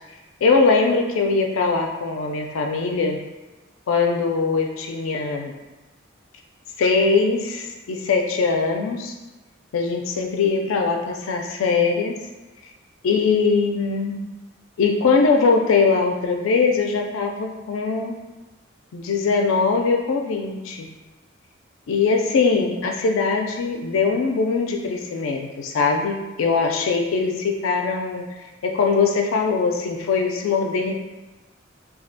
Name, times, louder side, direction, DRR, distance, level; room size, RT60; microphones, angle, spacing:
voice 1, 0.4-3.2 3.9-5.5 6.8-9.1 9.7-12.2 13.0-14.2 14.8-18.2 18.9-20.9 21.9-28.2 28.6-30.9, left 4 dB, 90° left, 3 dB, 0.3 m, -21 dB
2.3 x 2.1 x 2.6 m, 1.1 s
head